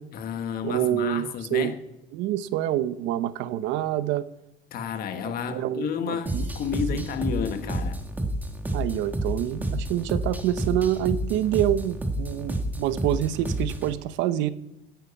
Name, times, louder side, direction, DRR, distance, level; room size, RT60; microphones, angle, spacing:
voice 1, 0.1-1.7 4.7-8.0, left 7 dB, 55° left, 1.6 m, -31 dB
voice 2, 0.6-1.7 2.1-4.2 5.5-6.5 6.9-7.0 8.7-14.5, right 12 dB, 90° right, 0.9 m, -27 dB
sound 1, 6.3-13.9, right 1 dB, 10° right, 1.5 m, -30 dB
10.5 x 9.2 x 8.5 m
cardioid pair, 155°, 19 cm